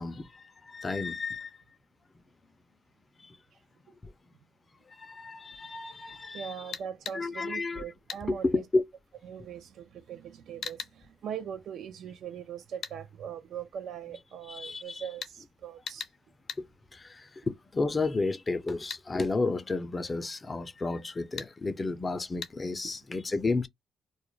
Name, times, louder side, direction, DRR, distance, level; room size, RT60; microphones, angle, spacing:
voice 1, 0.0-1.6 3.2-3.4 4.0-4.1 4.9-6.5 7.1-7.8 8.3-8.8 14.5-15.0 16.6-16.7 16.9-23.7, left 3 dB, 25° left, 0.4 m, -32 dB
voice 2, 6.3-8.6 9.3-16.1 22.8-22.9, right 8 dB, 70° right, 0.4 m, -41 dB
sound 1, 6.7-7.2 8.1-8.3 10.6-10.9 12.8-13.0 15.2-15.4 15.9-16.2 16.5-16.6 18.9-19.1 21.4-21.5 22.4-22.5, left 7 dB, 65° left, 0.7 m, -38 dB
2.3 x 2.0 x 3.0 m
cardioid pair, 90°, 0 cm